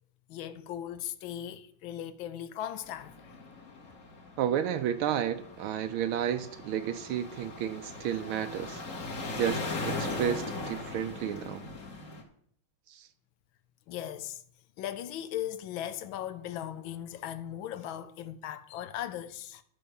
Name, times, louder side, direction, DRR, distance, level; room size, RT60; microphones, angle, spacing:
voice 1, 0.3-3.3 13.9-14.4 14.8-19.6, left 11 dB, 70° left, 1.4 m, -38 dB
sound 1, 2.8-12.2, left 3 dB, 40° left, 1.7 m, -39 dB
voice 2, 4.4-8.8 9.3-11.6 12.9-13.1, right 9 dB, 75° right, 1.4 m, -32 dB
11.5 x 5.1 x 6.9 m
omnidirectional pair, 2.4 m